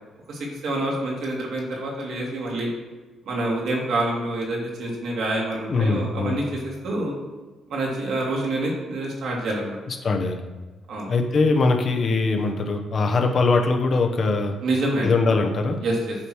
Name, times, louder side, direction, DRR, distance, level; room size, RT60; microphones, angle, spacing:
voice 1, 0.3-2.7 3.3-7.1 7.7-9.8 10.9-11.1 14.6-15.1 15.8-16.2, right 2 dB, 70° right, -2 dB, 2.2 m, -27 dB
voice 2, 5.6-6.4 9.9-10.4 11.1-14.6 15.0-15.8, left 3 dB, 50° left, 3 dB, 1.0 m, -22 dB
8.6 x 3.2 x 6.2 m, 1.3 s
cardioid pair, 90°, 0 cm